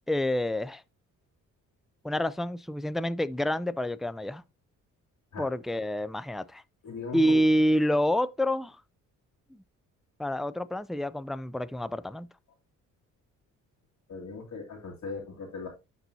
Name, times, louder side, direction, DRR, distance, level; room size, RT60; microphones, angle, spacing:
voice 1, 0.1-0.8 2.0-4.4 5.4-6.6 7.1-8.8 9.5-9.6 10.2-12.3, equal, ahead, 0.3 m, -27 dB
voice 2, 6.8-7.5 14.1-15.7, left 4 dB, 60° left, 2.3 m, -38 dB
11.5 x 4.1 x 2.7 m
cardioid pair, 80°, 32 cm